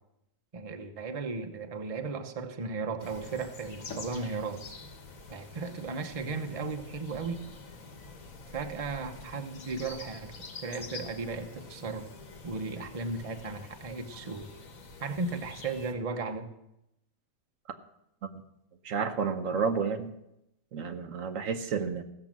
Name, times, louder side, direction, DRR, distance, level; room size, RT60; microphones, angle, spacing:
voice 1, 0.5-4.6 5.3-7.4 8.5-12.1 12.4-14.5 15.0-16.5, right 4 dB, 30° right, 6 dB, 0.9 m, -36 dB
sound 1, 3.0-15.9, left 4 dB, 75° left, 1.7 m, -47 dB
voice 2, 18.8-20.1 20.7-22.0, right 5 dB, 70° right, 7 dB, 1.2 m, -31 dB
16.0 x 6.7 x 7.4 m, 0.84 s
omnidirectional pair, 1.5 m